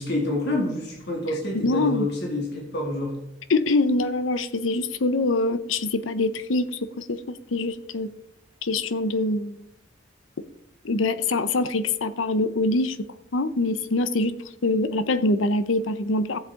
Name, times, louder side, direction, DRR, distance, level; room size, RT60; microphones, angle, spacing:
voice 1, 0.0-3.2, left 1 dB, 60° left, -1 dB, 2.5 m, -27 dB
voice 2, 1.6-2.1 3.5-8.1 8.6-9.6 10.8-13.0 13.3-14.3 14.6-16.4, left 2 dB, 85° left, 13 dB, 0.7 m, -24 dB
14.5 x 7.7 x 3.7 m, 0.79 s
head